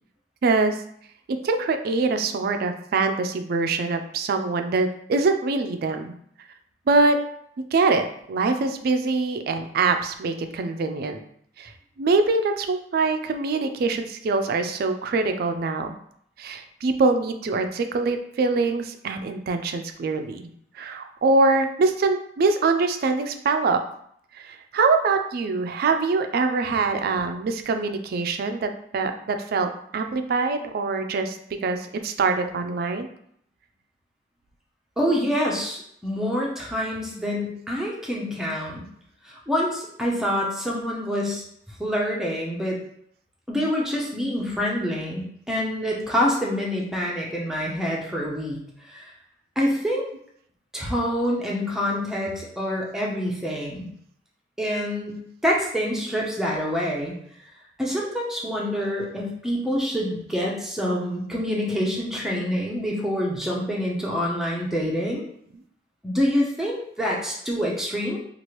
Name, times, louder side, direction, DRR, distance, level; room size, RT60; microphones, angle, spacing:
voice 1, 0.4-0.8 1.3-6.1 6.9-7.2 7.6-11.2 11.6-11.7 12.0-15.9 16.4-20.5 20.7-23.8 24.3-33.1, right 3 dB, 55° right, 7 dB, 0.3 m, -24 dB
voice 2, 35.0-38.9 39.2-41.4 41.8-42.8 43.5-48.6 48.8-49.1 49.6-50.1 50.7-53.9 54.6-57.1 57.8-65.2 66.0-68.2, equal, 5° right, -3 dB, 0.6 m, -26 dB
3.0 x 2.4 x 3.0 m, 0.67 s
head